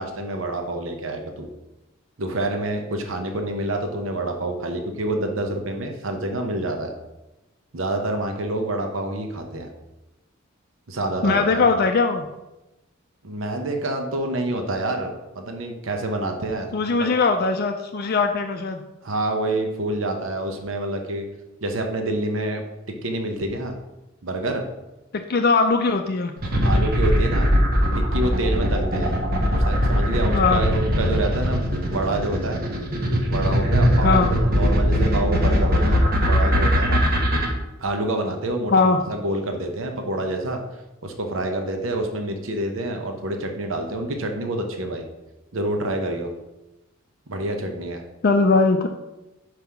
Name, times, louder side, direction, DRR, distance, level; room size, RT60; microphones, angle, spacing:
voice 1, 0.0-1.5 2.2-6.9 7.7-9.7 10.9-11.7 13.2-17.1 18.1-18.2 19.0-21.2 21.6-22.6 23.0-23.8 24.2-24.6 26.6-27.5 27.9-29.1 29.6-32.6 33.2-37.0 37.8-40.6 41.0-45.0 45.5-46.3 47.3-48.0, right 1 dB, 70° right, 4 dB, 0.9 m, -27 dB
voice 2, 11.2-12.2 16.7-18.8 25.1-26.3 30.3-30.6 34.0-34.3 38.7-39.0 48.2-48.9, left 4 dB, 50° left, 5 dB, 0.5 m, -20 dB
sound 1, 26.4-37.5, equal, 50° right, 1.1 m, -20 dB
5.6 x 4.9 x 5.8 m, 0.98 s
head